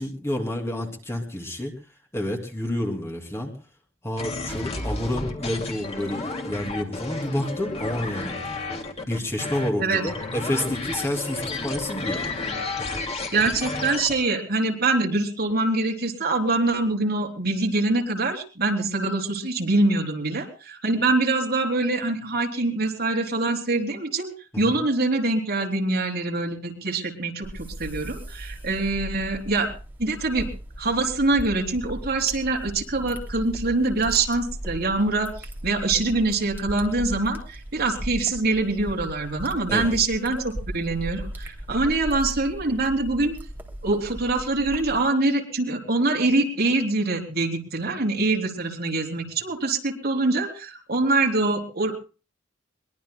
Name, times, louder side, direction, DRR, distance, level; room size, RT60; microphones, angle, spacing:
voice 1, 0.0-1.7 2.1-3.5 4.0-8.6 9.1-12.4 39.7-39.9, left 1 dB, 15° left, 1 dB, 2.9 m, -29 dB
sound 1, 4.2-14.2, left 3 dB, 35° left, 2.5 m, -31 dB
voice 2, 13.3-24.3 24.6-29.7 30.0-30.5 30.8-35.3 35.6-43.4 43.8-51.9, right 2 dB, 55° right, 1 dB, 3.8 m, -24 dB
sound 2, 27.4-45.0, right 1 dB, 10° right, 2.8 m, -37 dB
23.0 x 22.0 x 2.3 m, 0.35 s
head